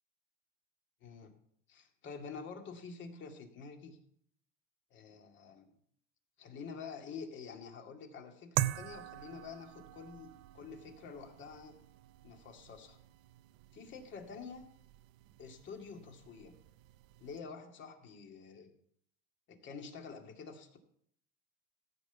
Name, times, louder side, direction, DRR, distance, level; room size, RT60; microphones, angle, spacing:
voice 1, 1.0-1.3 1.7-4.0 4.9-5.7 6.4-11.7 12.2-13.0 13.7-14.6 15.4-16.5 17.2-18.7 19.5-20.8, left 5 dB, 35° left, 4 dB, 2.3 m, -48 dB
sound 1, 8.6-17.4, right 15 dB, 55° right, 0.7 m, -43 dB
15.0 x 5.4 x 8.2 m, 0.66 s
supercardioid pair, 135°, 31 cm